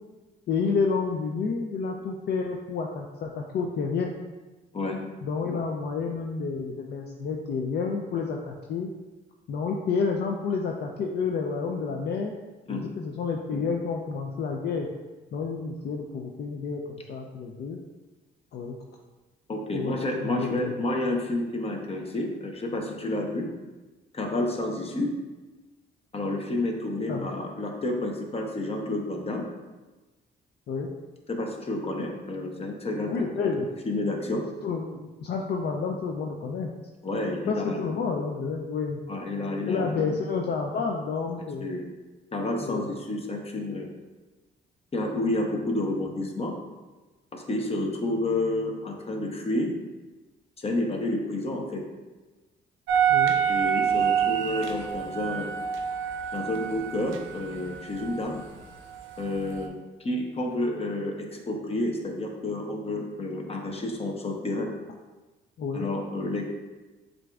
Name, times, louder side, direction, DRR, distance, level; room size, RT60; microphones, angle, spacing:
voice 1, 0.5-4.1 5.2-8.9 9.5-12.3 12.7-14.9 15.3-16.8 17.1-17.8 18.5-18.8 19.7-20.8 27.1-27.3 30.7-30.9 33.1-33.7 34.6-36.7 37.5-39.0 39.7-41.7 42.6-42.9 53.1-53.3 65.6-65.9, left 5 dB, 55° left, 1 dB, 0.4 m, -29 dB
voice 2, 19.5-23.5 24.1-25.1 26.1-29.4 31.3-33.1 33.4-33.5 33.8-34.4 37.0-37.8 39.1-40.2 41.6-41.9 42.3-43.9 44.9-46.5 47.3-49.7 50.6-51.8 53.5-55.5 56.3-58.4 59.2-59.7 60.0-64.7 65.7-66.5, left 1 dB, 30° left, 1 dB, 0.8 m, -30 dB
sound 1, 52.9-58.4 58.8-59.7, right 8 dB, 80° right, 0.5 m, -27 dB
7.4 x 2.6 x 2.3 m, 1.2 s
cardioid pair, 90°, 20 cm